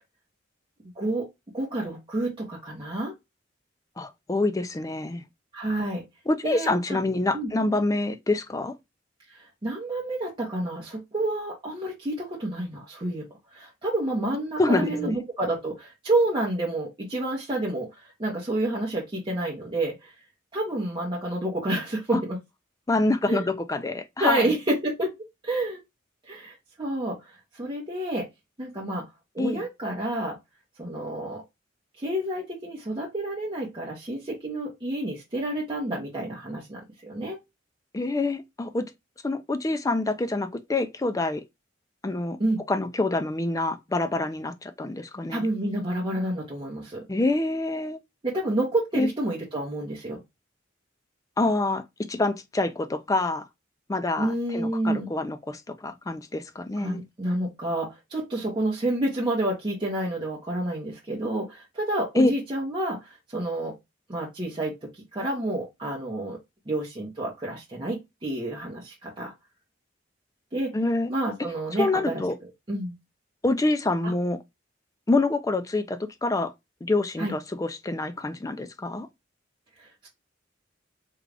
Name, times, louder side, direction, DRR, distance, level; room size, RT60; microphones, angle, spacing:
voice 1, 1.0-1.3 1.5-3.1 5.5-6.0 6.4-7.0 7.3-7.5 9.3-13.2 13.5-17.9 18.2-20.1 20.5-22.4 23.3-23.5 24.2-25.1 25.4-25.8 26.3-28.3 28.6-29.0 29.3-30.4 30.8-31.4 32.0-37.4 42.4-42.6 45.3-47.0 48.2-50.2 54.2-55.1 56.8-63.7 64.1-66.4 66.7-69.3 70.5-70.7 71.1-72.2 72.7-72.9 74.0-74.1 77.2-77.3 79.8-80.1, right 1 dB, 25° right, 0.8 m, -29 dB
voice 2, 4.0-5.2 6.3-8.7 14.6-15.2 22.1-22.2 22.9-24.5 29.4-29.6 37.9-38.9 39.2-41.4 42.0-42.4 42.7-45.4 47.1-48.0 48.9-49.1 51.4-51.8 52.1-53.4 53.9-57.0 62.2-62.3 70.7-71.1 71.7-72.4 73.4-74.4 75.1-76.5 76.8-79.1, left 2 dB, 15° left, 0.4 m, -26 dB
3.7 x 2.3 x 3.2 m
head